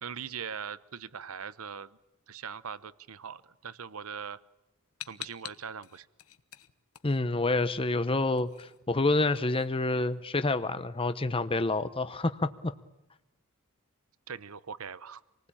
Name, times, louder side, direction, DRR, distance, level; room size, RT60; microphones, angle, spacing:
voice 1, 0.0-2.0 2.3-4.4 5.1-6.1 14.3-15.2, right 7 dB, 75° right, 17 dB, 0.9 m, -41 dB
sound 1, 5.0-7.7 8.0-10.4, left 12 dB, 85° left, 1.2 m, -47 dB
voice 2, 7.0-12.7, left 2 dB, 25° left, 11 dB, 0.9 m, -28 dB
27.5 x 19.5 x 8.8 m, 0.99 s
head